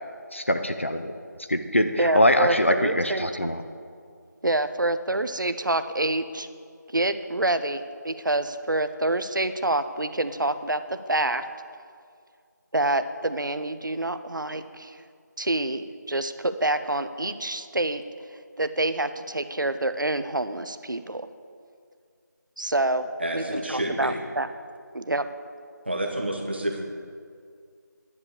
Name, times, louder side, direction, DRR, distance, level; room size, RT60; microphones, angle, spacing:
voice 1, 0.3-1.1 1.5-3.6, left 1 dB, 40° left, 7 dB, 0.7 m, -23 dB
voice 2, 2.0-3.3 4.4-6.5 6.9-11.4 12.7-15.0 15.4-18.0 18.6-21.3 22.6-24.5 24.9-25.3, right 2 dB, 90° right, 11 dB, 0.8 m, -27 dB
voice 3, 23.2-24.2 25.8-26.8, right 1 dB, 35° right, 1 dB, 1.3 m, -29 dB
10.5 x 7.2 x 8.4 m, 2.2 s
figure-of-eight pair, 180°, 10 cm